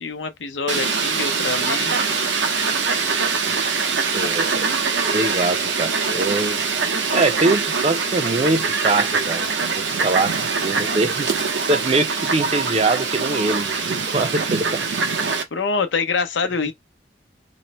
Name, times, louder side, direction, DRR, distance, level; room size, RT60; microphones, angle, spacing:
voice 1, 0.0-2.0 15.5-16.7, left 4 dB, 85° left, 0.7 m, -25 dB
Fowl, 0.7-15.4, right 5 dB, 80° right, 0.7 m, -23 dB
voice 2, 4.1-4.7 5.1-6.6 7.1-9.5 10.0-10.3 10.6-14.8, right 2 dB, 35° right, 0.5 m, -23 dB
3.1 x 2.0 x 4.0 m
head